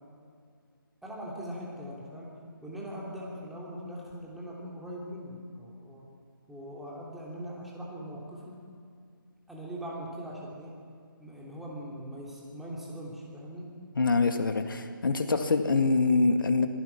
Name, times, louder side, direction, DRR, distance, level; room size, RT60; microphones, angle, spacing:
voice 1, 1.0-2.3 2.6-6.0 6.5-8.6 9.5-10.7 11.2-13.7, equal, ahead, -5 dB, 3.1 m, -41 dB
voice 2, 14.0-16.7, left 3 dB, 65° left, 7 dB, 2.1 m, -25 dB
26.5 x 19.0 x 6.0 m, 2.2 s
figure-of-eight pair, 160°, 12 cm